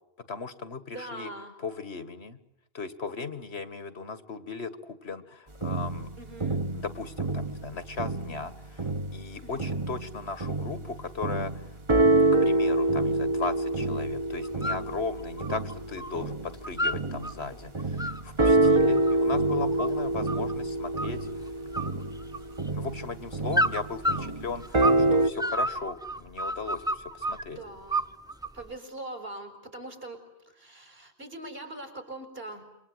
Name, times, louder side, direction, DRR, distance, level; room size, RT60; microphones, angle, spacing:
voice 1, 0.3-1.3 1.6-2.4 2.7-6.1 6.7-8.9 9.1-11.7 12.4-18.0 18.2-21.2 22.7-27.6, left 4 dB, 90° left, 13 dB, 2.1 m, -37 dB
voice 2, 0.9-1.6 6.2-6.7 9.4-9.8 17.5-17.6 19.7-20.1 25.4-25.6 27.4-28.1 28.5-32.6, right 1 dB, 65° right, 6 dB, 5.8 m, -42 dB
sound 1, 5.6-8.5 8.8-17.4 17.7-25.3, right 2 dB, 30° right, 1.1 m, -26 dB
sound 2, 14.4-14.8 15.2-16.1 16.4-17.3 17.8-20.5 21.0-21.4 21.7-22.7 23.5-25.1 25.4-27.4 27.9-28.6, right 1 dB, 5° right, 1.1 m, -30 dB
27.5 x 24.5 x 8.1 m, 0.85 s
omnidirectional pair, 1.1 m